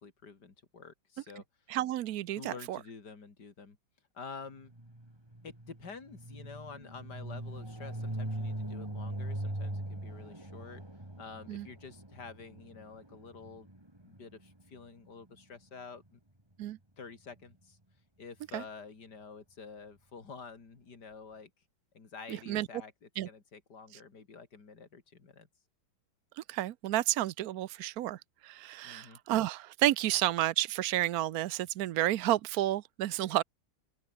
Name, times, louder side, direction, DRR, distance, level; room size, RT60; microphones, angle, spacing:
voice 1, 0.0-1.4 2.4-3.8 4.1-4.7 5.4-10.8 11.2-13.7 14.0-16.2 17.0-17.8 18.2-21.5 21.9-25.5 28.8-29.2, left 5 dB, 55° left, 3.8 m, -49 dB
voice 2, 1.7-2.8 11.5-11.7 16.6-16.8 18.5-18.6 22.3-22.7 23.2-23.3 26.4-33.4, right 14 dB, 70° right, 0.9 m, -31 dB
sound 1, 4.7-14.6, right 1 dB, 10° right, 3.5 m, -41 dB
open air
omnidirectional pair, 2.2 m